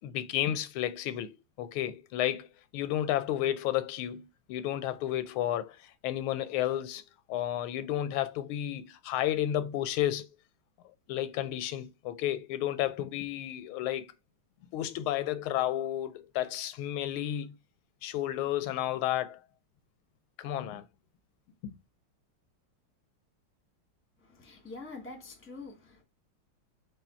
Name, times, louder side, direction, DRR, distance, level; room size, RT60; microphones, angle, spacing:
voice 1, 0.0-2.5 2.7-5.8 6.0-7.0 7.3-10.3 11.1-14.1 14.7-17.5 18.0-19.4 20.4-20.8 21.6-21.8, left 12 dB, 85° left, 1.4 m, -32 dB
voice 2, 24.2-26.0, left 3 dB, 10° left, 0.8 m, -45 dB
4.9 x 2.5 x 4.3 m
omnidirectional pair, 2.3 m